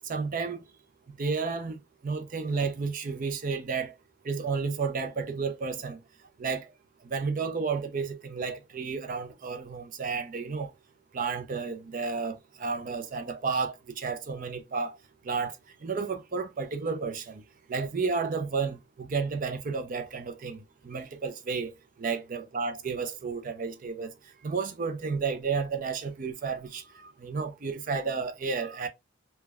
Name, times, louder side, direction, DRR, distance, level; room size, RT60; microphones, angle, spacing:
voice 1, 0.1-0.6 1.2-1.8 2.0-3.9 4.2-6.0 6.4-6.7 7.0-10.7 11.1-12.3 12.6-14.9 15.2-15.5 15.8-17.4 17.7-21.7 22.0-24.1 24.4-28.9, right 5 dB, 40° right, 0.4 m, -32 dB
3.3 x 2.1 x 2.2 m
head